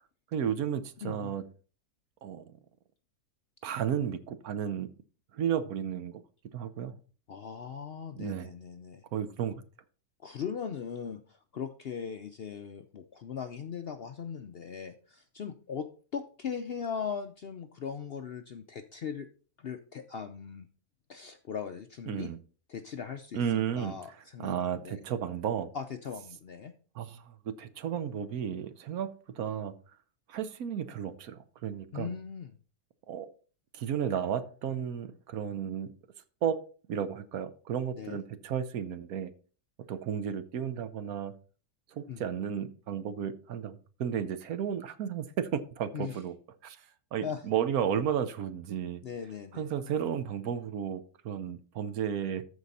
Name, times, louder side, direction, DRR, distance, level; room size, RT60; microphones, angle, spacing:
voice 1, 0.3-1.4 2.2-2.5 3.6-4.9 5.3-6.2 6.5-6.9 8.2-8.5 9.1-9.6 22.1-22.4 23.3-24.0 24.4-25.7 26.9-29.7 30.3-32.1 33.1-33.3 33.7-35.9 36.4-36.6 36.9-39.3 39.9-41.3 41.9-46.3 46.6-46.8 47.1-49.0 49.5-52.4, right 8 dB, 75° right, 12 dB, 1.2 m, -33 dB
voice 2, 1.0-1.3 7.3-9.0 10.2-15.9 16.1-19.3 19.6-20.7 21.1-22.3 22.7-23.4 23.8-25.0 25.7-26.7 31.9-32.5 38.0-38.2 42.1-42.2 45.9-46.2 47.2-47.4 49.0-49.7, left 7 dB, 60° left, 8 dB, 0.6 m, -39 dB
13.5 x 4.8 x 4.0 m, 0.39 s
omnidirectional pair, 1.6 m